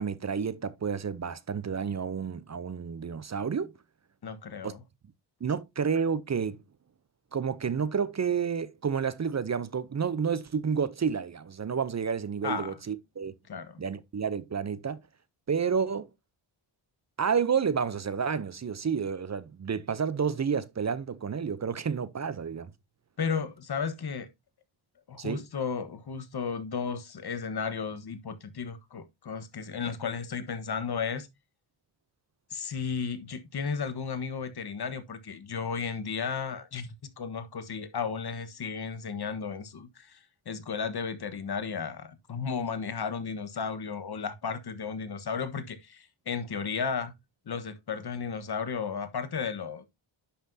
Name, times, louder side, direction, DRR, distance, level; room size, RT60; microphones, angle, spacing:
voice 1, 0.0-3.7 4.6-4.7 5.4-6.6 7.3-13.3 13.8-15.0 15.5-16.1 17.2-22.7 25.2-25.4, right 6 dB, 35° right, 0.6 m, -30 dB
voice 2, 4.2-4.8 12.4-12.8 13.5-13.8 23.2-24.3 25.1-31.3 32.5-47.1 47.5-49.8, left 6 dB, 50° left, 1.4 m, -34 dB
10.0 x 5.9 x 2.7 m
cardioid pair, 85°, 50 cm